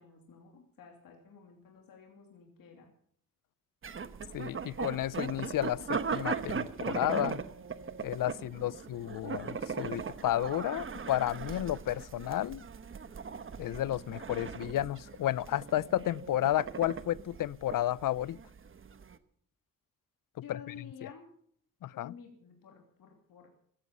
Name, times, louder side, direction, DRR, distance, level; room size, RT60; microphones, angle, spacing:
voice 1, 0.0-2.9 8.3-8.8 20.4-21.3 21.9-23.5, left 7 dB, 90° left, 3.0 m, -52 dB
sound 1, 3.8-19.2, right 5 dB, 40° right, 1.1 m, -39 dB
voice 2, 4.3-7.4 8.0-12.6 13.6-18.4 20.5-20.6 21.0-21.1 21.8-22.1, left 13 dB, 70° left, 0.6 m, -32 dB
16.0 x 15.5 x 5.5 m
wide cardioid pair, 120°, 33 cm